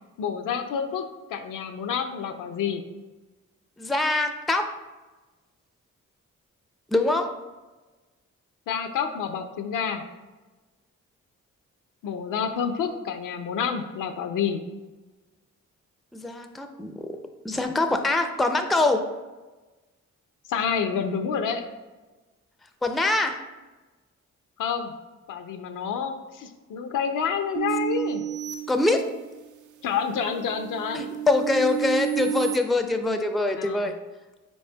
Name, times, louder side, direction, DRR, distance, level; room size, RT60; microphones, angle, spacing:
voice 1, 0.2-1.0 1.3-2.8 8.7-10.0 12.0-14.6 20.5-21.6 24.6-24.9 25.3-28.2 29.8-31.1 33.6-33.9, left 7 dB, 70° left, 7 dB, 0.5 m, -28 dB
voice 2, 3.8-4.6 6.9-7.3 16.1-17.1 17.4-19.0 22.8-23.4 28.7-29.1 30.9-33.9, left 2 dB, ahead, 6 dB, 0.4 m, -24 dB
sound 1, 27.6-29.5 30.0-32.6, right 12 dB, 60° right, 0.5 m, -31 dB
4.2 x 4.2 x 2.2 m, 1.2 s
supercardioid pair, 45°, 34 cm